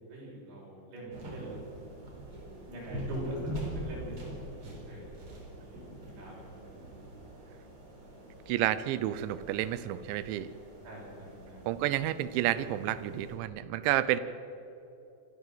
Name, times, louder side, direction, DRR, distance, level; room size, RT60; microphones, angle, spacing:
voice 1, 0.1-1.6 2.7-5.1 5.6-7.1 10.8-11.6, right 1 dB, 55° right, -4 dB, 8.0 m, -43 dB
sound 1, 1.1-13.4, equal, 30° right, 4.5 m, -44 dB
voice 2, 8.5-10.5 11.7-14.2, right 13 dB, 80° right, 15 dB, 2.9 m, -30 dB
25.0 x 14.5 x 7.9 m, 2.9 s
omnidirectional pair, 5.5 m